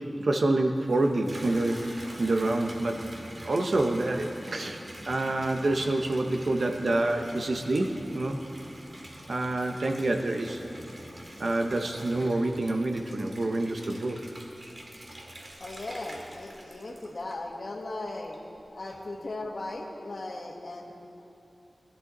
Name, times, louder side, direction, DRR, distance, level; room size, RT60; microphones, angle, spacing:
voice 1, 0.0-3.1 3.4-8.4 9.3-10.6 11.4-14.2, right 2 dB, 75° right, 4 dB, 1.0 m, -27 dB
Water tap faucet / Bathtub (filling or washing), 0.7-17.6 18.1-18.7, right 1 dB, 50° right, 2.2 m, -45 dB
voice 2, 15.6-18.4 18.7-20.9, left 2 dB, 65° left, 1 dB, 1.7 m, -37 dB
21.0 x 12.0 x 4.0 m, 2.8 s
wide cardioid pair, 50°, 0 cm